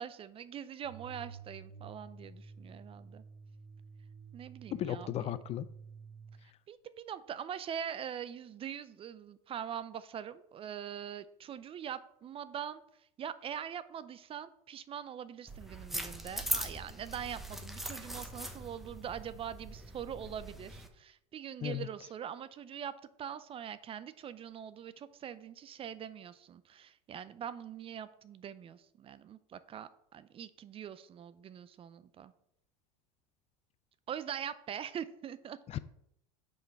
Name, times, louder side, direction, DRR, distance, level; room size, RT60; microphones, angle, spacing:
voice 1, 0.0-3.2 4.3-5.3 6.4-22.9 23.2-32.3 34.1-35.8, right 9 dB, 30° right, 14 dB, 0.4 m, -43 dB
sound 1, 0.8-6.4, right 5 dB, 75° right, 1.8 m, -51 dB
voice 2, 4.8-5.7 21.6-21.9 35.7-35.8, left 12 dB, 35° left, 14 dB, 0.4 m, -35 dB
sound 2, 15.5-20.9, equal, ahead, 0.8 m, -40 dB
5.8 x 5.0 x 4.5 m, 0.76 s
hypercardioid pair, 90°, 19 cm